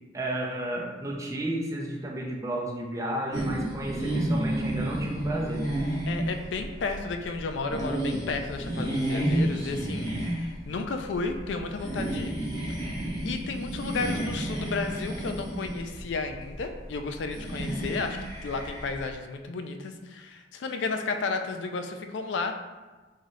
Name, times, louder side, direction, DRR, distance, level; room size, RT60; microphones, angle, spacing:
voice 1, 0.1-5.7, right 1 dB, 20° right, -2 dB, 0.5 m, -32 dB
sound 1, 3.3-19.1, right 1 dB, 20° left, 1.1 m, -31 dB
voice 2, 6.1-12.4 13.2-22.5, left 4 dB, 80° left, 6 dB, 0.4 m, -33 dB
3.9 x 2.6 x 3.1 m, 1.3 s
head